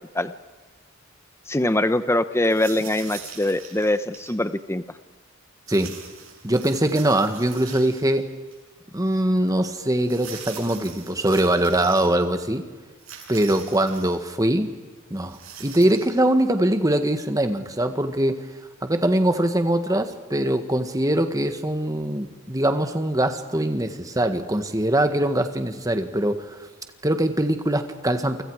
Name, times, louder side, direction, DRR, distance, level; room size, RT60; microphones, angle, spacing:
voice 1, 1.5-4.8, left 1 dB, 15° left, 12 dB, 0.9 m, -23 dB
sound 1, 2.4-4.4 5.7-8.2 8.5-8.6 10.0-12.1 13.0-14.2 15.2-16.2, right 7 dB, 75° right, 7.2 m, -42 dB
voice 2, 6.4-8.3 8.9-12.6 13.3-14.7 15.1-18.5 18.8-26.6 27.0-28.4, right 1 dB, 15° right, 8 dB, 1.6 m, -22 dB
29.0 x 24.5 x 4.9 m, 1.3 s
head